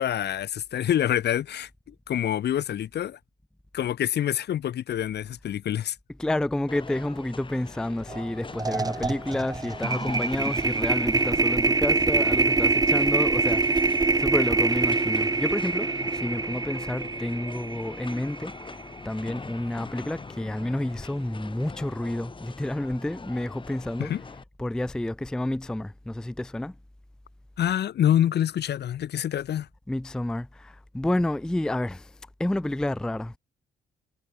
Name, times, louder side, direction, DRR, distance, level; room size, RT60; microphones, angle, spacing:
voice 1, 0.0-3.2 3.7-6.0 24.0-24.2 27.6-29.7, left 10 dB, 55° left, 0.9 m, -26 dB
voice 2, 6.2-18.5 19.0-24.1 24.6-26.7 29.9-32.1 32.4-33.4, left 1 dB, 5° left, 0.4 m, -30 dB
sound 1, 6.7-24.4, left 4 dB, 25° left, 1.7 m, -42 dB
sound 2, 8.1-8.3 8.6-18.8, right 3 dB, 20° right, 1.0 m, -25 dB
cardioid pair, 90°, 20 cm